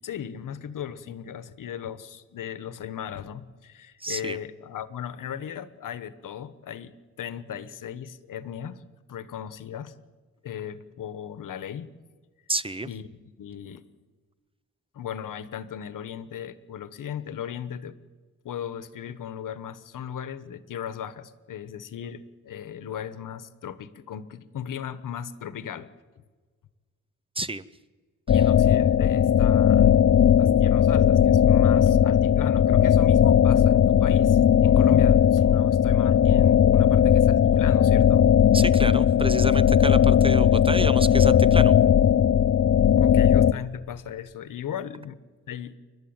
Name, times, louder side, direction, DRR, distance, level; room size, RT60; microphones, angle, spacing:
voice 1, 0.0-8.8 9.1-10.0 10.4-11.9 12.8-13.1 13.4-13.8 14.9-17.9 18.4-25.9 28.3-38.3 42.9-45.2 45.5-45.8, left 9 dB, 80° left, 14 dB, 1.2 m, -37 dB
voice 2, 4.0-4.4 12.5-12.9 27.4-27.6 28.3-28.4 38.5-41.7, right 2 dB, 15° right, 15 dB, 0.7 m, -30 dB
sound 1, 28.3-43.5, left 9 dB, 45° left, 0.7 m, -18 dB
29.0 x 12.0 x 8.9 m, 1.4 s
cardioid pair, 105°, 31 cm